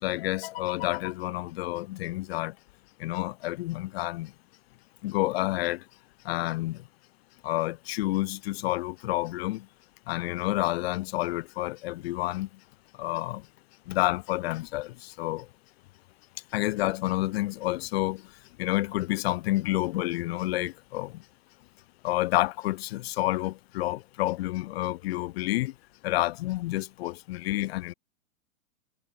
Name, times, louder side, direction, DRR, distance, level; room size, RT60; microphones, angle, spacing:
voice 1, 0.0-2.5 3.0-4.3 5.0-5.8 6.2-6.8 7.4-9.7 10.1-12.5 13.0-13.4 13.9-15.5 16.5-18.2 18.6-21.2 22.0-25.7 26.0-27.9, left 17 dB, 45° left, 4.4 m, -29 dB
figure-of-eight pair, 110°, 42 cm